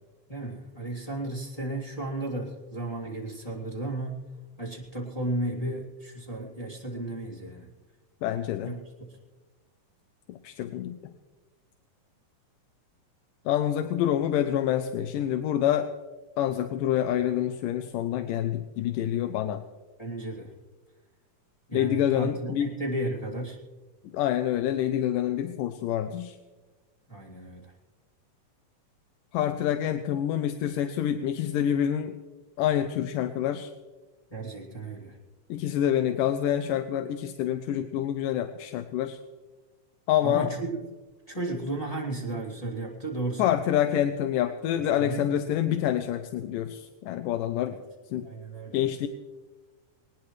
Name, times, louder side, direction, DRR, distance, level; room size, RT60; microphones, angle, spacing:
voice 1, 0.3-4.2 4.6-7.7 8.6-9.2 20.0-20.5 21.7-23.6 27.1-27.7 34.3-35.2 40.2-40.8 41.3-43.6 45.0-45.2 47.7-47.8 48.2-48.8, right 2 dB, 10° left, -4 dB, 2.3 m, -34 dB
voice 2, 8.2-8.7 10.3-11.1 13.5-15.9 16.4-19.6 21.7-22.7 24.1-26.4 29.3-32.2 32.6-33.7 35.5-39.2 40.1-40.5 43.4-47.8 48.1-48.3 48.7-49.1, left 11 dB, 85° left, 8 dB, 2.4 m, -27 dB
21.0 x 19.5 x 3.2 m, 1.2 s
omnidirectional pair, 3.8 m